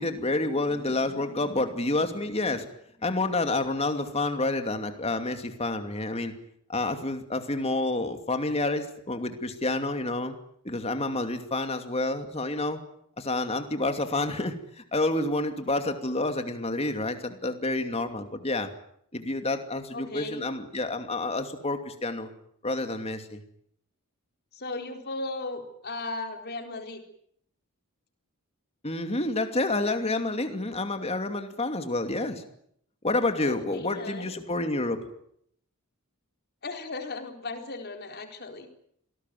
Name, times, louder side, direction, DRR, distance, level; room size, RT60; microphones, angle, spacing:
voice 1, 0.0-2.7 3.0-6.3 6.7-10.4 10.6-12.8 13.2-14.6 14.9-18.7 19.1-22.3 22.6-23.4 28.8-32.4 33.0-35.0, left 2 dB, 30° left, 7 dB, 2.7 m, -29 dB
voice 2, 19.9-20.5 24.5-27.0 33.4-34.3 36.6-38.7, left 2 dB, 45° left, 5 dB, 4.2 m, -36 dB
27.0 x 19.0 x 9.4 m, 0.70 s
head